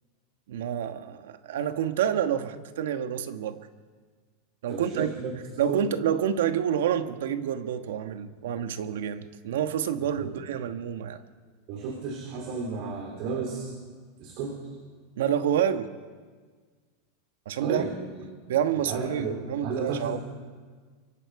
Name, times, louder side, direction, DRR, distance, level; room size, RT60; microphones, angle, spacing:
voice 1, 0.5-3.7 4.6-5.1 5.6-11.2 15.2-15.9 17.4-17.8 18.5-20.2, right 9 dB, 85° right, 1.3 m, -28 dB
voice 2, 4.7-5.4 5.7-5.8 10.0-10.4 11.7-13.7 14.2-14.6 17.6-18.2 18.8-20.2, right 5 dB, 50° right, 3.3 m, -33 dB
24.5 x 23.5 x 4.8 m
supercardioid pair, 150°, 0 cm